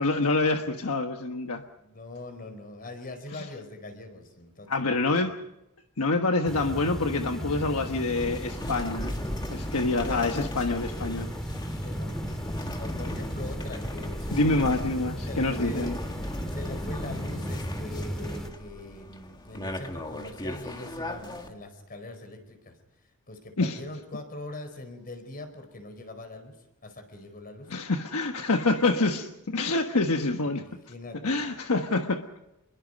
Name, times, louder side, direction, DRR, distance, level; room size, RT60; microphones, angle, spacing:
voice 1, 0.0-1.6 3.3-3.5 4.7-5.4 6.0-9.2 9.5-11.3 14.3-16.0 23.6-23.8 27.7-30.6 31.2-32.2, left 3 dB, 70° left, 5 dB, 1.3 m, -26 dB
voice 2, 1.8-5.2 11.8-12.1 12.5-14.9 15.3-16.0 16.5-22.8 23.3-26.6 26.8-27.7 28.9-29.2 30.3-31.6, left 2 dB, 40° left, 7 dB, 4.7 m, -42 dB
sound 1, 6.4-18.5, equal, ahead, 2.0 m, -36 dB
sound 2, 8.2-21.5, left 1 dB, 20° left, 2.0 m, -37 dB
26.5 x 22.0 x 5.3 m, 0.91 s
head